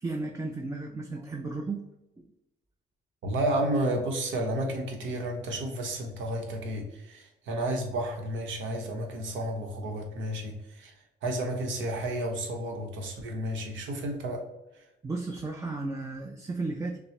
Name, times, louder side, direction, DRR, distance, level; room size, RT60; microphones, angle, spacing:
voice 1, 0.0-1.8 15.0-17.0, right 3 dB, 15° right, 3 dB, 0.4 m, -34 dB
voice 2, 3.2-10.9 11.2-14.4, right 1 dB, 75° right, 3 dB, 0.9 m, -31 dB
5.9 x 2.0 x 3.2 m, 0.92 s
cardioid pair, 90°, 20 cm